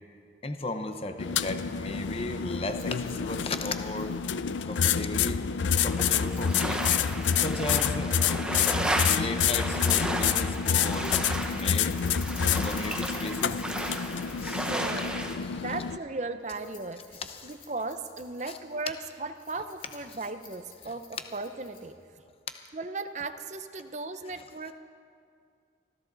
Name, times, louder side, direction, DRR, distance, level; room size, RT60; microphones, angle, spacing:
voice 1, 0.4-4.2 4.6-5.4 5.8-6.9 7.4-8.2 9.0-11.1 11.5-12.0 12.5-14.0 14.4-14.7 15.4-15.6 17.1-17.5 18.5-18.6 20.8-20.9 24.2-24.4, left 2 dB, 30° left, 7 dB, 0.8 m, -35 dB
sound 1, 1.2-16.0, left 7 dB, 80° left, 0.5 m, -28 dB
Rattle, 2.5-22.1, left 5 dB, 45° left, 3.0 m, -50 dB
sound 2, 5.7-15.4, right 1 dB, 5° right, 0.9 m, -34 dB
voice 2, 14.7-15.2 15.5-21.0 21.3-22.0 22.7-24.7, right 3 dB, 40° right, 9 dB, 0.7 m, -36 dB
24.5 x 14.5 x 4.0 m, 2.3 s
head